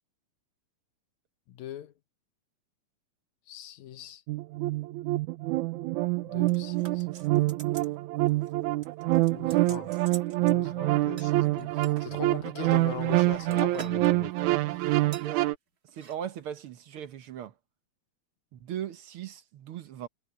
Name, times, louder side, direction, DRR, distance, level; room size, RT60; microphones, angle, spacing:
voice 1, 1.5-1.9 3.5-4.2 6.2-7.1 9.2-9.9 10.4-14.9, left 10 dB, 75° left, 2.3 m, -41 dB
sound 1, 4.3-15.5, right 18 dB, 85° right, 2.1 m, -26 dB
sound 2, 6.5-8.0 8.3-8.5 8.8-10.6 11.2-12.1 12.7-14.1 14.4-14.6 15.1-15.3 15.9-16.2 16.4-16.5, right 6 dB, 40° right, 1.6 m, -47 dB
voice 2, 15.9-17.5 18.5-20.1, right 10 dB, 65° right, 1.4 m, -38 dB
omnidirectional pair, 3.4 m